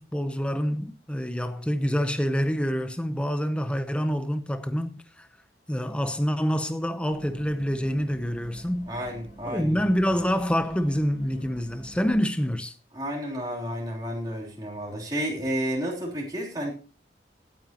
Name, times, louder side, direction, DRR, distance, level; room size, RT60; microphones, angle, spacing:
voice 1, 0.0-5.3 5.7-8.9 9.4-12.7, equal, 5° left, 0.7 m, -27 dB
Bus, 7.1-12.1, right 1 dB, 45° left, 4.8 m, -47 dB
voice 2, 8.9-10.0 12.9-16.7, equal, 25° right, 3.2 m, -31 dB
16.5 x 9.1 x 2.9 m
head